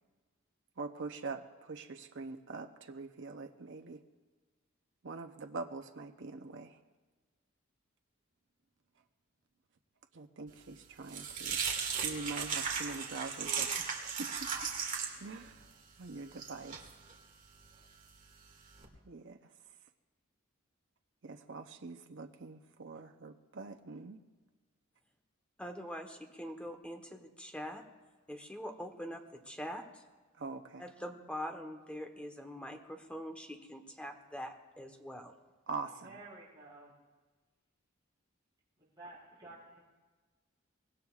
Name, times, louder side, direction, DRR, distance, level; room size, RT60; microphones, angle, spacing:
voice 1, 0.8-4.0 5.0-6.8 10.1-14.7 14.9-15.6 16.0-16.8 19.0-19.5 21.2-24.2 30.3-30.9 35.7-36.2, right 3 dB, 65° right, 5 dB, 0.7 m, -44 dB
sound 1, 10.6-18.8, right 6 dB, 40° right, 2.1 m, -38 dB
voice 2, 25.6-27.8 28.3-29.9 30.8-35.3, equal, 5° left, 4 dB, 1.1 m, -43 dB
voice 3, 36.0-36.9 38.8-39.8, right 2 dB, 20° right, -8 dB, 5.2 m, -52 dB
24.0 x 19.5 x 2.4 m, 1.3 s
head